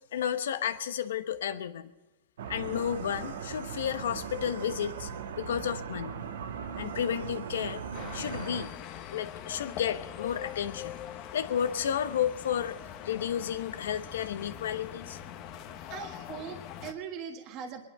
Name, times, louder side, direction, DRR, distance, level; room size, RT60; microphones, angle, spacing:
voice 1, 0.1-1.9 2.5-5.1 5.4-6.1 6.8-7.8 8.1-10.9 11.3-12.8 13.0-15.2, left 9 dB, 85° left, 11 dB, 1.1 m, -32 dB
sound 1, 2.4-8.7, right 7 dB, 80° right, 1.5 m, -39 dB
sound 2, 7.9-16.9, left 10 dB, 35° left, 1.1 m, -43 dB
voice 2, 15.9-17.8, right 7 dB, 35° right, 3 dB, 1.6 m, -40 dB
19.5 x 11.5 x 5.5 m, 1.1 s
supercardioid pair, 155°, 0 cm